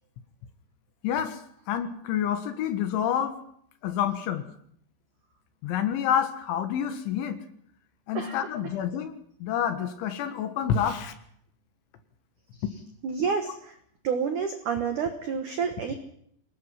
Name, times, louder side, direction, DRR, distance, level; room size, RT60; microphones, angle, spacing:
voice 1, 1.0-1.4 1.7-3.4 3.8-4.5 5.6-7.4 8.1-11.1, left 9 dB, 70° left, 9 dB, 3.6 m, -28 dB
voice 2, 13.0-13.7 14.0-15.9, right 6 dB, 85° right, 6 dB, 1.7 m, -29 dB
25.5 x 19.0 x 5.7 m, 0.68 s
omnidirectional pair, 5.9 m